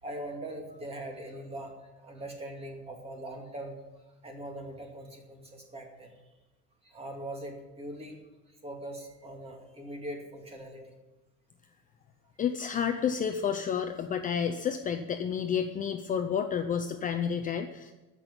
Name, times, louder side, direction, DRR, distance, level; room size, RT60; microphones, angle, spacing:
voice 1, 0.0-3.8 4.2-6.1 6.8-8.2 8.5-10.8, right 1 dB, 20° right, 2 dB, 2.3 m, -41 dB
voice 2, 12.4-17.9, left 7 dB, 25° left, 6 dB, 0.6 m, -30 dB
15.0 x 6.1 x 9.6 m, 1.1 s
cardioid pair, 175°, 31 cm